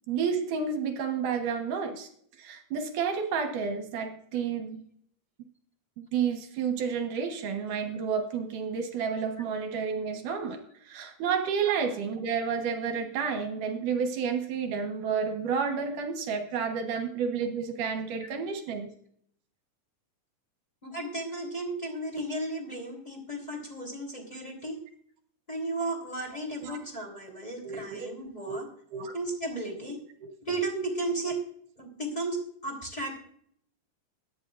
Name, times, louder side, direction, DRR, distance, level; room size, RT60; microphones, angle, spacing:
voice 1, 0.1-2.1 2.4-4.8 6.0-10.6 10.8-18.9 26.6-26.8 27.6-28.1 28.5-28.6 28.9-29.1, right 6 dB, 75° right, 5 dB, 2.9 m, -30 dB
voice 2, 20.8-24.8 25.5-28.7 29.1-30.0 30.4-31.4 31.8-32.4 32.6-33.1, right 2 dB, 15° left, 0 dB, 3.4 m, -34 dB
23.5 x 9.9 x 2.5 m, 0.63 s
omnidirectional pair, 3.7 m